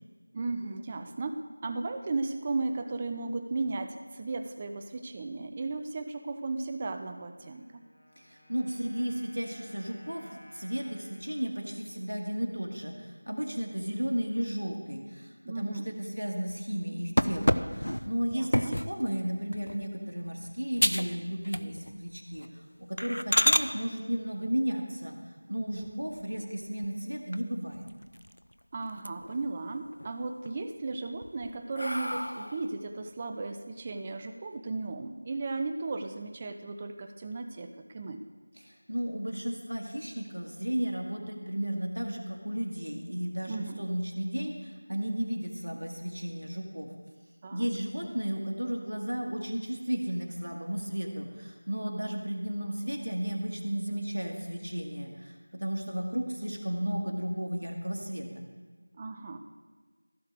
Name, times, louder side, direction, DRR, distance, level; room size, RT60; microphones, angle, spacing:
voice 1, 0.3-7.8 15.4-15.9 18.3-18.8 28.7-38.2 43.5-43.8 47.4-47.7 58.9-59.4, right 3 dB, 15° right, 7 dB, 0.4 m, -35 dB
Wind instrument woodwind instrument, 7.3-13.0, equal, 50° left, 1.4 m, -57 dB
voice 2, 8.2-25.2 25.5-27.9 38.6-46.9 47.5-58.4, equal, 85° right, 1 dB, 1.7 m, -34 dB
sound 1, 17.2-19.0 19.5-19.8 20.3-20.4 20.8-21.1 21.4-22.0 22.3-22.5 23.0-23.7 25.7-26.4 26.8-26.9 27.3-27.4 27.7-28.5 28.9-29.5 29.9-30.5 31.0-32.7, equal, 85° left, 0.4 m, -29 dB
15.0 x 6.4 x 3.4 m, 1.4 s
figure-of-eight pair, 175°, 0 cm